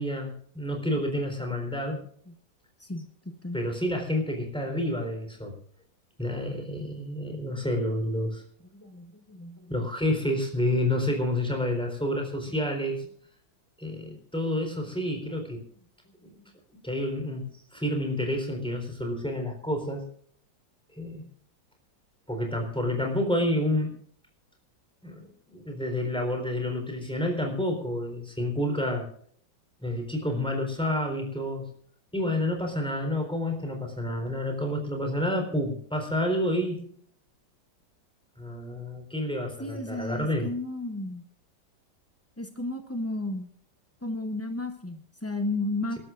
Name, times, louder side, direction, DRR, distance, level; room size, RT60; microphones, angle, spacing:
voice 1, 0.0-2.0 3.5-5.6 6.2-8.4 9.7-13.0 13.8-15.6 16.2-16.3 16.8-17.4 17.7-20.0 21.0-21.2 22.3-23.9 25.0-29.1 29.8-31.7 32.1-36.8 38.4-40.5, left 1 dB, 5° left, 3 dB, 3.9 m, -29 dB
voice 2, 2.8-3.6 8.7-9.7 39.6-41.2 42.4-43.5 44.0-46.0, left 2 dB, 20° left, 6 dB, 0.4 m, -33 dB
28.0 x 12.5 x 2.5 m, 0.62 s
omnidirectional pair, 2.0 m